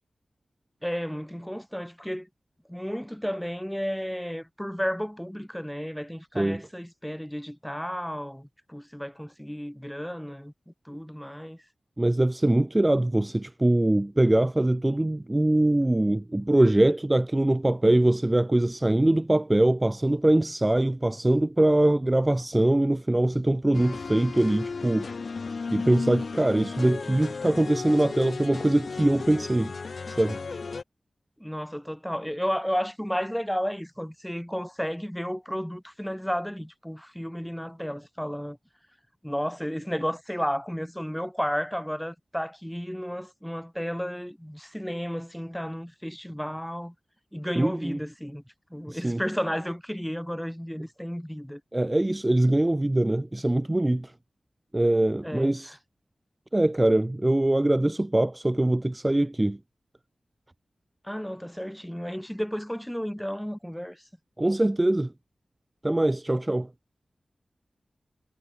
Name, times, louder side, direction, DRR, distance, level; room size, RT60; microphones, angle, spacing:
voice 1, 0.8-2.3 2.7-11.6 31.4-38.6 39.2-46.9 47.3-48.4 48.7-51.6 55.2-55.8 61.0-64.0, equal, 5° left, 3.6 m, -33 dB
voice 2, 12.0-25.1 25.7-29.7 30.1-30.4 47.6-48.0 48.9-49.2 51.7-54.1 54.7-55.8 56.5-59.6 64.4-65.1 65.8-66.7, right 1 dB, 20° right, 1.1 m, -23 dB
sound 1, 23.7-30.8, left 4 dB, 70° left, 1.6 m, -34 dB
cardioid pair, 55°, 0 cm